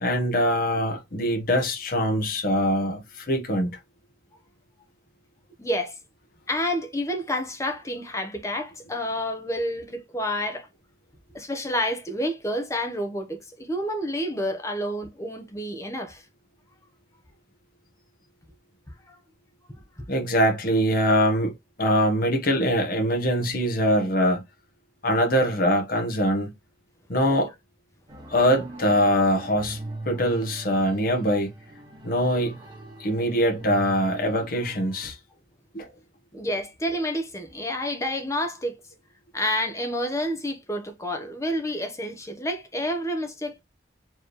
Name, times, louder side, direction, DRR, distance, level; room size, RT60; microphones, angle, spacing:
voice 1, 0.0-3.8 20.1-21.5 21.8-24.4 25.0-26.5 27.1-27.5 28.3-29.8 30.0-31.5 32.0-32.6 33.0-35.2 35.7-35.9, equal, 55° left, 1.1 m, -23 dB
voice 2, 5.6-6.0 6.5-10.7 11.3-16.2 19.1-19.2 20.0-20.1 36.3-38.8 39.3-43.6, equal, 15° left, 0.9 m, -29 dB
sound 1, 28.1-35.1, right 2 dB, 25° right, 1.4 m, -41 dB
4.5 x 3.1 x 3.1 m
head